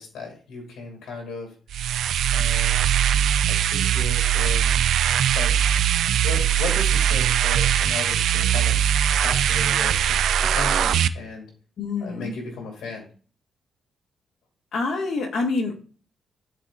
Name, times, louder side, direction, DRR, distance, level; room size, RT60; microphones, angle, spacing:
voice 1, 0.0-1.5 2.3-2.8 3.5-4.7 5.3-5.5 6.2-8.9 9.2-11.5 12.0-13.1, left 4 dB, 85° left, 0 dB, 2.4 m, -35 dB
sound 1, 1.7-11.1, right 10 dB, 85° right, 0.3 m, -21 dB
voice 2, 11.8-12.3 14.7-15.7, left 3 dB, 70° left, 2 dB, 1.8 m, -26 dB
12.5 x 4.2 x 2.5 m, 0.40 s
cardioid pair, 95°, 0 cm